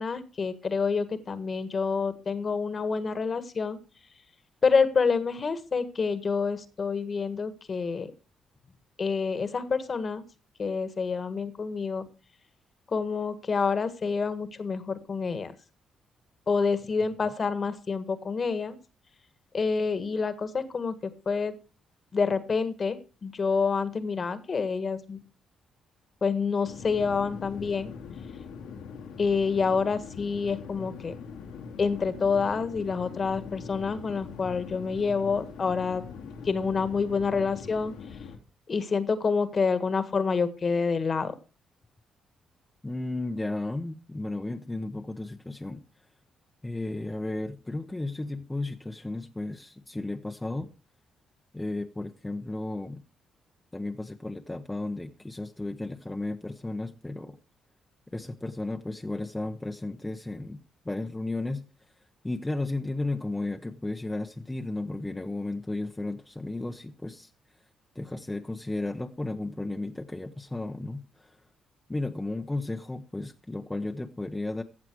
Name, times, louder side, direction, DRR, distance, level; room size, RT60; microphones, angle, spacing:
voice 1, 0.0-3.8 4.6-8.1 9.0-10.2 10.6-12.0 12.9-15.5 16.5-18.8 19.5-21.5 22.1-25.2 26.2-27.9 29.2-31.1 31.8-36.0 36.4-37.9 38.7-41.3, left 5 dB, 40° left, 1.6 m, -27 dB
sound 1, 26.6-38.4, left 6 dB, 85° left, 2.4 m, -42 dB
voice 2, 42.8-45.8 46.6-50.7 51.5-53.0 53.7-57.4 58.1-61.6 62.2-67.3 67.9-71.4 71.9-74.6, left 2 dB, 10° left, 0.9 m, -34 dB
14.5 x 7.5 x 4.6 m
cardioid pair, 90°, 0 cm